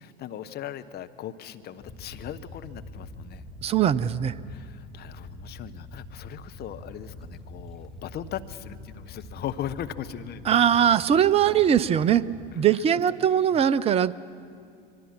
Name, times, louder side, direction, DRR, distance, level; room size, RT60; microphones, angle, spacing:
voice 1, 0.0-3.4 4.5-10.8 12.5-13.2 13.5-13.7, left 10 dB, 35° left, 10 dB, 1.1 m, -39 dB
sound 1, 1.8-12.6, left 2 dB, ahead, 2.1 m, -44 dB
voice 2, 3.6-4.3 10.5-12.2 12.6-14.2, right 9 dB, 20° right, 19 dB, 0.6 m, -21 dB
25.0 x 23.0 x 6.1 m, 2.3 s
figure-of-eight pair, 80°, 29 cm